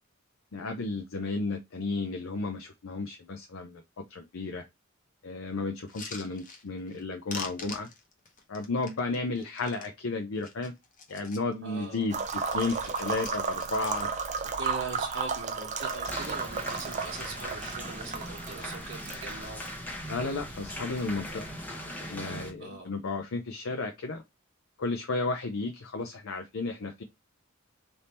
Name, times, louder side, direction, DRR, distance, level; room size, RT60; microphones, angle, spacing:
voice 1, 0.5-4.6 5.2-7.9 8.5-10.7 11.1-12.2 12.5-14.1 20.1-21.4 22.0-24.2 24.8-27.0, left 3 dB, 75° left, 0.6 m, -33 dB
sound 1, 5.9-7.0 7.3-9.9 10.3-11.5 11.9-14.4 14.7-14.8 15.0-15.3 15.6-17.6 18.0-18.7 19.2-19.7 20.0-20.6 21.4-21.7, left 4 dB, 40° left, 0.9 m, -46 dB
voice 2, 11.6-12.1 14.6-19.6 22.6-22.9, right 3 dB, 60° right, 1.2 m, -41 dB
sound 2, 12.1-21.9, right 5 dB, 35° right, 0.5 m, -35 dB
sound 3, 16.1-22.5, left 1 dB, 10° left, 0.9 m, -40 dB
3.4 x 2.8 x 4.2 m
head